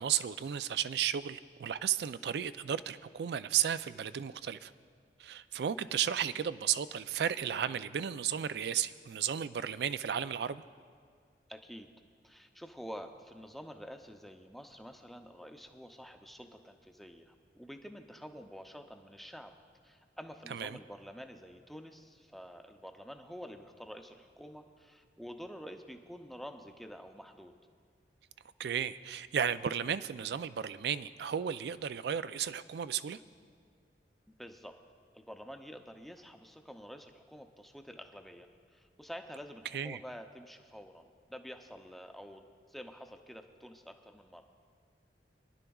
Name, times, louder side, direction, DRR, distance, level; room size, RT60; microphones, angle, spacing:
voice 1, 0.0-4.7 5.2-10.6 20.5-20.8 28.6-33.2 39.7-40.0, right 9 dB, 70° right, 14 dB, 0.3 m, -34 dB
voice 2, 11.5-11.9 12.2-19.5 19.8-27.5 34.3-34.8 35.1-44.4, equal, ahead, 5 dB, 0.5 m, -48 dB
24.0 x 11.0 x 2.3 m, 2.1 s
head